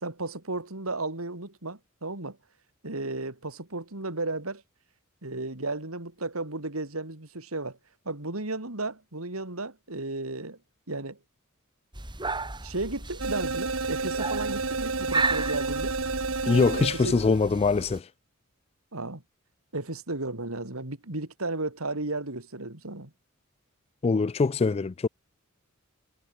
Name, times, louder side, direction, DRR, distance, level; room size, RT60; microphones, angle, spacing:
voice 1, 0.0-2.4 2.8-4.6 5.2-7.8 8.1-10.6 10.9-11.2 12.6-16.0 16.8-17.3 18.9-19.2 19.7-23.1, right 2 dB, 90° right, 3.4 m, -34 dB
sound 1, 11.9-18.0, right 3 dB, 20° right, 4.0 m, -34 dB
sound 2, 13.2-17.4, right 4 dB, 70° right, 1.5 m, -30 dB
voice 2, 16.5-18.1 24.0-25.1, left 4 dB, 30° left, 0.3 m, -23 dB
head